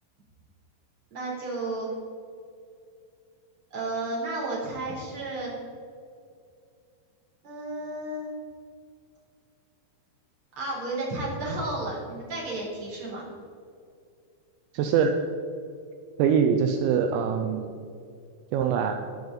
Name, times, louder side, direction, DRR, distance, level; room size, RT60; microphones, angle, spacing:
voice 1, 1.1-1.9 3.7-5.6 7.4-8.3 10.6-13.3, right 2 dB, 30° right, -5 dB, 3.8 m, -32 dB
voice 2, 14.7-15.1 16.2-17.7 18.5-19.0, right 7 dB, 85° right, 5 dB, 2.6 m, -23 dB
12.0 x 12.0 x 4.0 m, 2.4 s
omnidirectional pair, 5.9 m